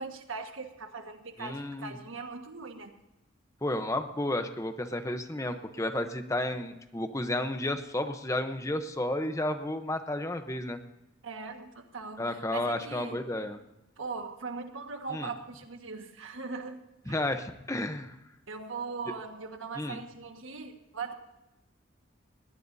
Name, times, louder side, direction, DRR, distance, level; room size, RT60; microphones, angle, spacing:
voice 1, 0.0-2.9 11.2-13.2 14.0-16.8 17.0-17.2 18.5-21.1, right 4 dB, 90° right, 5 dB, 1.6 m, -40 dB
voice 2, 1.4-2.0 3.6-10.8 12.2-13.6 15.1-15.3 17.1-18.1 19.8-20.0, left 1 dB, 15° left, 8 dB, 0.8 m, -32 dB
20.0 x 18.0 x 2.7 m, 0.97 s
head